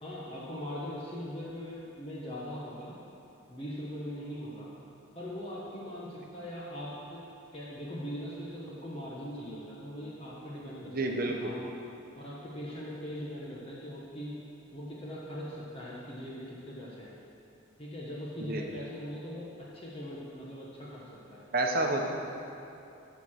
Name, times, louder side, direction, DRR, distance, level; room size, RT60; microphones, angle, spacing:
voice 1, 0.0-3.0 3.5-4.7 5.1-7.2 7.5-11.6 12.2-14.4 14.7-17.1 17.8-21.4, equal, 30° left, -6 dB, 1.1 m, -41 dB
voice 2, 10.9-11.5 18.4-18.6 21.5-22.1, right 2 dB, 50° right, 2 dB, 1.0 m, -29 dB
13.5 x 4.6 x 6.4 m, 2.7 s
head